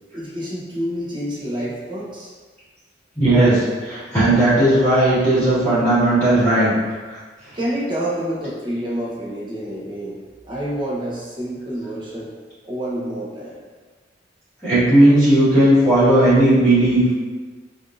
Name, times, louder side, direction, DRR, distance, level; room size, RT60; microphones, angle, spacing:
voice 1, 0.1-2.3 7.5-10.2 10.4-12.3 12.6-13.6, right 1 dB, 25° right, -7 dB, 0.8 m, -28 dB
voice 2, 3.1-6.7 7.1-7.2 14.6-17.1, right 1 dB, 10° left, -15 dB, 1.5 m, -15 dB
3.4 x 2.6 x 2.5 m, 1.4 s
head